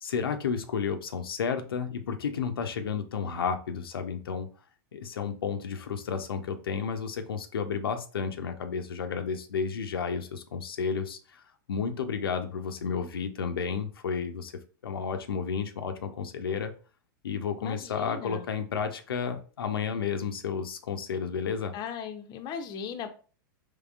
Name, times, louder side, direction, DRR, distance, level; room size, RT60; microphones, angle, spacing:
voice 1, 0.0-4.5 4.9-11.4 11.7-14.5 14.8-16.7 17.2-21.7, left 6 dB, 90° left, 6 dB, 0.5 m, -32 dB
voice 2, 17.6-18.5 21.7-23.1, left 7 dB, 35° left, 7 dB, 0.5 m, -37 dB
3.6 x 3.1 x 2.3 m, 0.39 s
hypercardioid pair, 110°, 12 cm